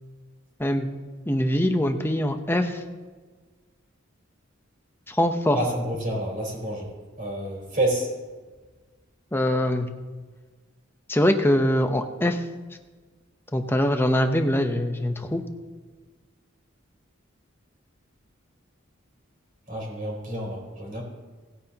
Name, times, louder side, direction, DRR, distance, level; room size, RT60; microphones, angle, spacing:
voice 1, 1.3-2.8 5.1-5.6 9.3-9.9 11.1-12.4 13.5-15.4, left 1 dB, 10° left, 6 dB, 0.8 m, -23 dB
voice 2, 5.5-6.9 7.2-8.1 19.7-21.0, right 1 dB, 40° right, -2 dB, 4.0 m, -28 dB
18.5 x 9.3 x 2.9 m, 1.4 s
head